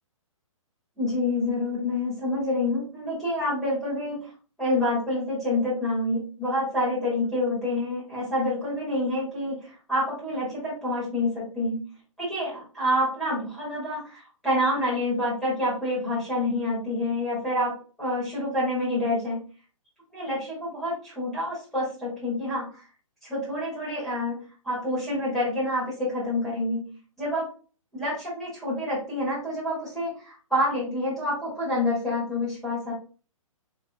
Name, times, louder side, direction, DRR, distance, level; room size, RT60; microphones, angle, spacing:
voice 1, 1.0-4.3 4.6-11.8 12.2-17.7 18.0-19.4 20.1-22.8 23.2-27.5 27.9-32.9, left 1 dB, ahead, -9 dB, 2.2 m, -27 dB
4.3 x 4.0 x 2.4 m, 0.37 s
hypercardioid pair, 170°, 18 cm